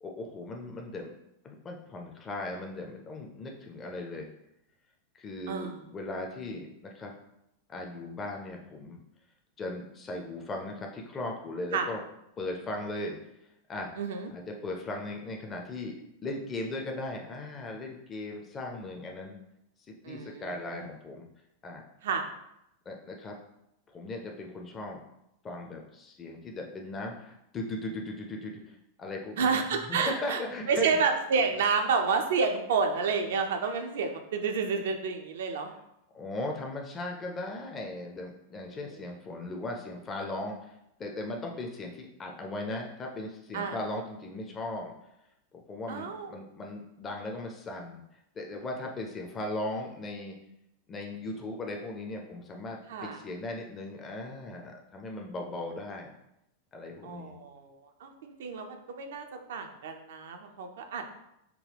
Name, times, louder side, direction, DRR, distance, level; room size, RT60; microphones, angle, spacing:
voice 1, 0.0-1.1 1.4-4.3 5.2-7.1 7.7-9.0 9.6-12.0 12.4-13.2 13.7-13.9 14.3-15.9 16.2-19.4 19.9-21.3 21.6-21.8 22.9-23.4 23.9-25.0 25.4-28.6 29.0-29.6 29.9-30.9 36.1-40.7 41.0-44.9 45.7-48.0 48.3-50.3 50.9-56.1 56.7-57.3, left 2 dB, 25° left, 1 dB, 0.6 m, -38 dB
voice 2, 5.5-5.8 11.7-11.9 14.0-14.3 20.0-20.8 22.0-22.3 29.4-30.4 30.7-35.7 43.5-43.8 45.9-46.3 52.9-53.2 57.0-57.7 58.0-61.1, right 5 dB, 60° right, 5 dB, 0.5 m, -30 dB
5.8 x 2.2 x 3.4 m, 0.82 s
figure-of-eight pair, 90°, 0 cm